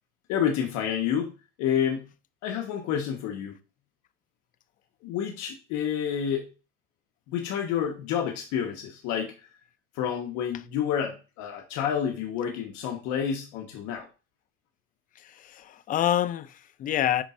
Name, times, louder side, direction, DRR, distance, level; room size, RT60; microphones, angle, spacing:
voice 1, 0.3-2.1 2.4-3.6 5.0-6.5 7.3-9.3 9.9-14.1, left 8 dB, 60° left, 1.4 m, -29 dB
voice 2, 15.2-17.2, left 11 dB, 25° left, 0.4 m, -27 dB
10.0 x 4.0 x 2.6 m
cardioid pair, 150°, 32 cm